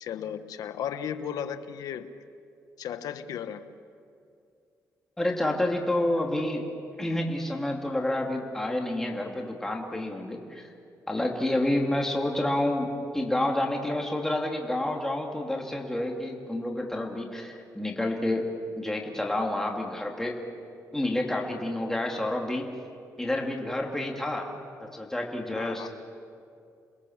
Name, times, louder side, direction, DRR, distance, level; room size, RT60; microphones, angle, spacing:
voice 1, 0.0-2.1 2.8-3.7 25.5-25.9, left 8 dB, 80° left, 10 dB, 1.2 m, -35 dB
voice 2, 5.2-6.6 7.0-10.7 11.1-12.9 13.1-18.5 18.8-20.3 20.9-22.7 23.2-24.5 24.8-25.9, left 1 dB, 5° left, 0 dB, 2.6 m, -29 dB
29.0 x 21.0 x 7.3 m, 2.4 s
cardioid pair, 115°, 6 cm